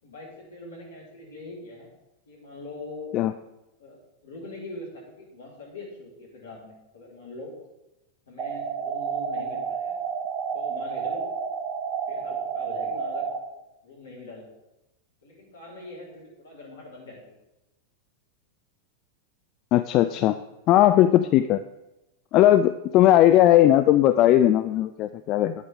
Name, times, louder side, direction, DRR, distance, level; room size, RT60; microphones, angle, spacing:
voice 1, 0.0-1.9 2.3-3.1 3.8-7.5 8.3-10.0 10.5-11.2 12.1-13.3 13.8-14.5 15.2-17.4, left 2 dB, 65° left, -3 dB, 4.3 m, -42 dB
sound 1, 8.4-13.4, right 6 dB, 35° right, 1.3 m, -30 dB
voice 2, 19.7-20.3 20.7-21.6 22.3-25.5, left 13 dB, 40° left, 12 dB, 0.4 m, -18 dB
10.5 x 9.8 x 3.7 m, 0.94 s
figure-of-eight pair, 90°, 0 cm